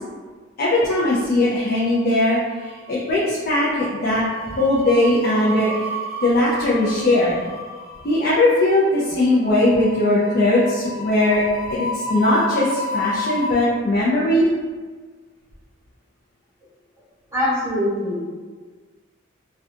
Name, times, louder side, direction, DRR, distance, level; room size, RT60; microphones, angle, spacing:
voice 1, 0.6-5.7 6.2-7.3 8.0-11.4 11.7-14.5, left 1 dB, 45° left, -7 dB, 0.4 m, -19 dB
sound 1, 1.5-2.3 2.5-2.8 4.0-13.5, left 1 dB, 80° right, 0.5 m, -31 dB
voice 2, 17.3-18.2, left 1 dB, 15° right, -9 dB, 0.8 m, -22 dB
2.6 x 2.2 x 2.4 m, 1.4 s
head